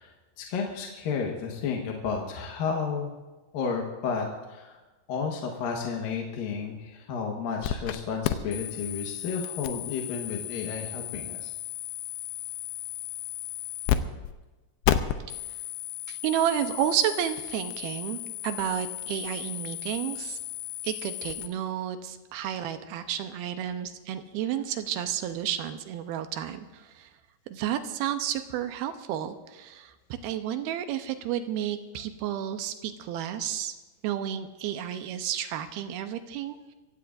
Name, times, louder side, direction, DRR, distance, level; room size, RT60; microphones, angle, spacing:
voice 1, 0.0-3.1 3.5-4.8 5.1-11.5, left 5 dB, 65° left, 0 dB, 2.8 m, -32 dB
sound 1, 7.6-8.0 8.2-14.0 14.2-14.3 14.8-21.5, left 12 dB, 80° left, 2.4 m, -33 dB
voice 2, 16.1-20.4 20.8-27.1 27.5-29.9 30.2-33.8 34.0-36.7, right 10 dB, 80° right, 8 dB, 2.5 m, -31 dB
25.5 x 15.5 x 2.6 m, 1.2 s
omnidirectional pair, 4.8 m